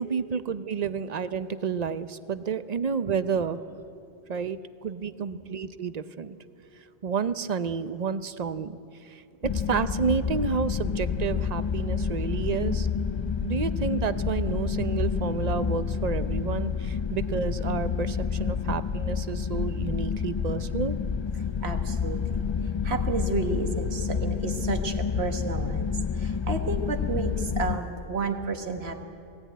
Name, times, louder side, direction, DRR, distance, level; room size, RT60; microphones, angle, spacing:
voice 1, 0.0-3.6 4.3-6.4 7.0-12.9 13.4-21.0, right 6 dB, 45° right, 13 dB, 0.7 m, -30 dB
sound 1, 9.4-27.8, left 6 dB, 45° left, 0.3 m, -29 dB
voice 2, 21.4-29.0, right 3 dB, 70° right, 5 dB, 1.6 m, -32 dB
19.5 x 16.0 x 9.3 m, 2.6 s
omnidirectional pair, 1.1 m